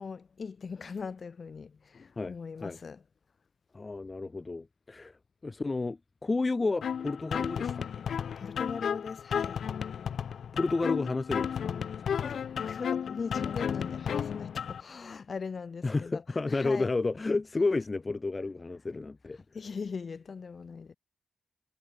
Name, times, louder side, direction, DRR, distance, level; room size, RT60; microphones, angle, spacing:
voice 1, 0.0-3.0 8.4-9.6 12.2-16.9 19.5-20.9, left 5 dB, 55° left, 3.8 m, -40 dB
voice 2, 3.7-5.2 5.4-7.8 10.5-11.9 15.8-19.4, left 3 dB, 30° left, 2.3 m, -31 dB
sound 1, 6.8-14.8, left 7 dB, 75° left, 0.5 m, -33 dB
cardioid pair, 75°, 0 cm